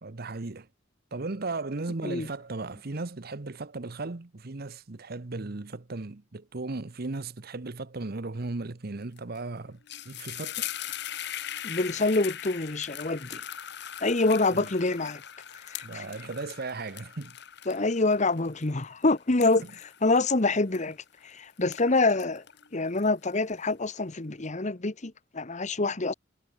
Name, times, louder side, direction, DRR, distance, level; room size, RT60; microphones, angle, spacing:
voice 1, 0.0-0.7 1.1-10.7 14.5-14.7 15.8-17.4, right 3 dB, 50° right, 0.9 m, -36 dB
sound 1, 9.2-9.4 9.7-21.2 21.6-23.5, left 11 dB, 60° left, 1.9 m, -40 dB
voice 2, 11.6-13.4 14.0-15.2 15.7-16.0 17.7-21.0 21.2-22.4 22.7-26.1, left 3 dB, 35° left, 1.2 m, -26 dB
head